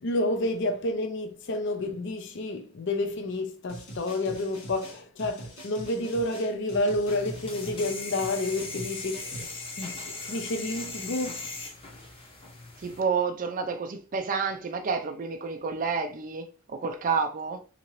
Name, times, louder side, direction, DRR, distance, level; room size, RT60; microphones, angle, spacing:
voice 1, 0.0-9.5 9.8-11.4, left 2 dB, 55° left, 0.5 m, -30 dB
sound 1, 3.7-9.7, right 1 dB, 70° left, 1.4 m, -43 dB
sound 2, 7.1-13.0, left 3 dB, 25° left, 0.8 m, -39 dB
voice 2, 12.8-17.6, right 5 dB, 40° right, 0.4 m, -29 dB
3.7 x 2.9 x 2.9 m
head